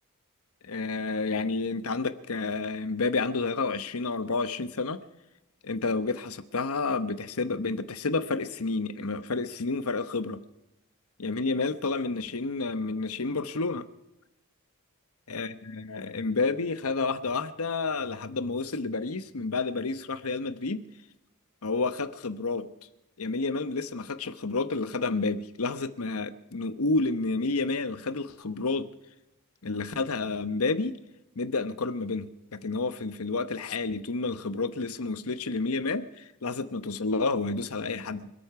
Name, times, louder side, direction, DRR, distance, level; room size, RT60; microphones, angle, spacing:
voice 1, 0.6-5.0 5.6-10.4 11.2-13.9 15.3-20.8 21.6-22.7 23.2-28.9 29.6-31.0 31.4-38.3, left 3 dB, 75° left, 13 dB, 1.0 m, -30 dB
25.5 x 8.6 x 5.9 m, 0.92 s
head